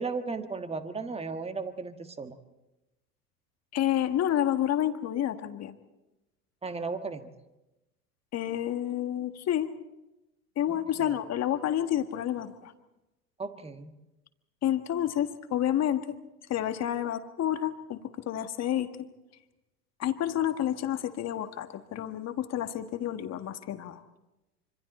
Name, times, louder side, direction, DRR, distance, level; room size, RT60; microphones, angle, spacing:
voice 1, 0.0-2.4 6.6-7.3 10.7-11.2 13.4-13.9, right 4 dB, 15° right, 8 dB, 1.5 m, -36 dB
voice 2, 3.7-5.8 8.3-9.7 10.5-12.7 14.6-16.0 16.5-18.9 20.0-24.0, left 11 dB, 35° left, 8 dB, 1.6 m, -29 dB
26.5 x 25.0 x 4.3 m, 0.99 s
hypercardioid pair, 85°, 47 cm